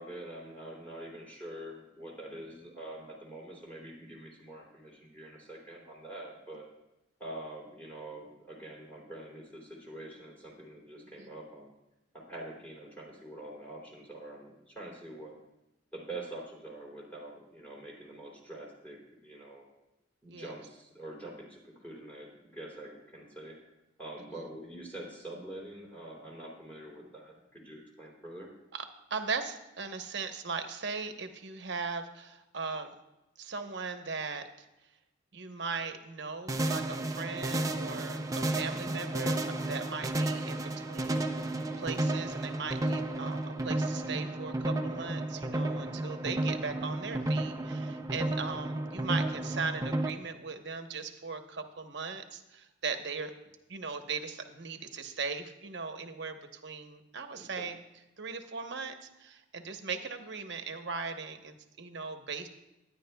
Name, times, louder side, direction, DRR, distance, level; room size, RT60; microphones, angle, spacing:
voice 1, 0.0-6.7 7.2-11.7 12.1-15.4 15.9-19.6 20.2-23.6 24.0-28.5 57.3-57.7, right 1 dB, 10° left, -5 dB, 3.0 m, -45 dB
voice 2, 29.1-32.9 33.4-34.7 35.3-53.3 53.7-57.8 58.2-62.5, right 4 dB, 60° right, 6 dB, 1.0 m, -38 dB
sound 1, 36.5-50.1, right 2 dB, 15° right, 0.5 m, -32 dB
22.5 x 10.0 x 2.3 m, 0.94 s
head